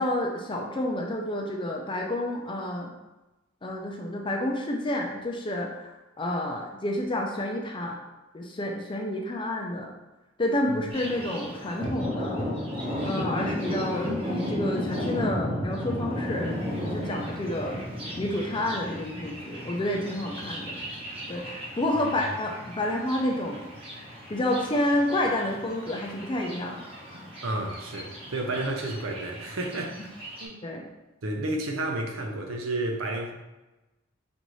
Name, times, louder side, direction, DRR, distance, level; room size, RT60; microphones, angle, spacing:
voice 1, 0.0-2.9 3.6-8.0 8.3-9.9 10.4-12.4 13.0-16.6 16.8-17.8 18.2-20.8 21.3-23.6 24.0-26.8 30.6-30.9, left 1 dB, 25° left, 1 dB, 0.5 m, -29 dB
Thunder, 10.9-30.5, equal, 30° right, 1.0 m, -35 dB
voice 2, 27.4-30.0 30.4-30.6 31.2-33.3, right 2 dB, 85° right, 2 dB, 0.7 m, -31 dB
5.3 x 2.6 x 3.1 m, 1.0 s
head